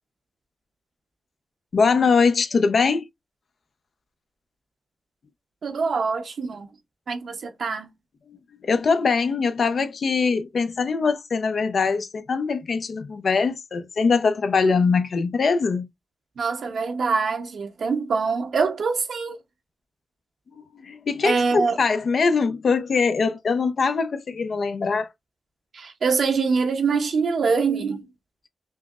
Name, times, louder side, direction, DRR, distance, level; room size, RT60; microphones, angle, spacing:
voice 1, 1.7-3.0 8.3-8.4 8.6-15.9 20.8-25.1, left 5 dB, 65° left, 0.6 m, -22 dB
voice 2, 5.6-6.7 7.1-7.9 16.4-19.4 21.2-21.8 25.7-28.1, right 5 dB, 75° right, 0.8 m, -24 dB
5.5 x 2.0 x 2.4 m
cardioid pair, 60°, 0 cm